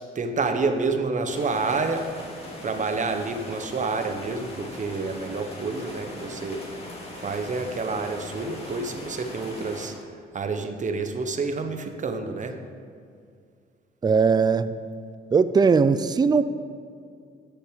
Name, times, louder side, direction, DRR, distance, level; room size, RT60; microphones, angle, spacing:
voice 1, 0.0-2.1 2.6-6.6 7.2-9.9 10.3-12.6, right 4 dB, 40° right, 6 dB, 1.0 m, -28 dB
sound 1, 1.3-9.9, left 1 dB, 30° left, 2.3 m, -40 dB
voice 2, 14.0-14.8 15.3-16.4, right 5 dB, 20° right, 13 dB, 0.4 m, -19 dB
12.0 x 6.6 x 5.0 m, 2.3 s
cardioid pair, 90°, 20 cm